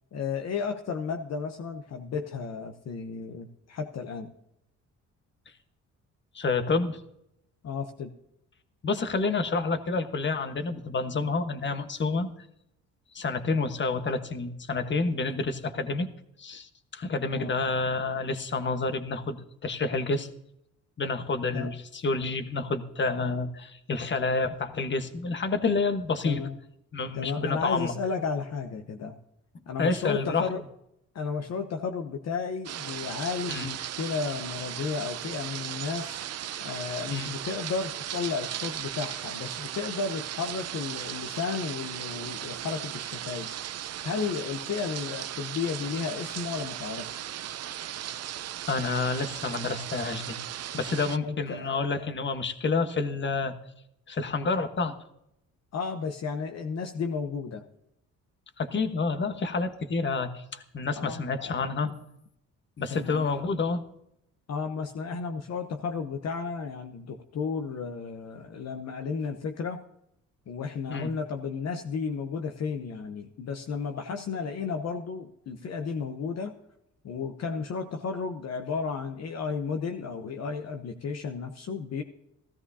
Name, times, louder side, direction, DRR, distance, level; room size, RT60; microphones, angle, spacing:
voice 1, 0.1-4.3 7.6-8.1 17.4-17.6 21.5-21.7 26.2-26.6 27.1-29.2 29.7-30.6 31.1-43.5 44.0-47.3 51.2-51.7 52.0-52.1 55.7-57.6 61.0-61.6 61.8-61.9 62.9-63.4 64.5-69.8 70.5-76.5 77.0-82.0, left 5 dB, 60° left, 5 dB, 1.0 m, -33 dB
voice 2, 6.3-7.0 8.8-12.3 13.1-16.1 16.4-20.3 21.0-26.4 26.9-27.9 29.8-30.5 33.5-33.7 37.1-37.3 48.7-50.3 50.7-53.5 54.1-54.9 58.6-61.9 62.8-63.8 70.9-71.1, left 3 dB, 40° left, 8 dB, 1.3 m, -29 dB
sound 1, 32.6-51.2, right 11 dB, 55° right, 0.6 m, -37 dB
16.0 x 14.0 x 2.8 m, 0.78 s
cardioid pair, 90°, 30 cm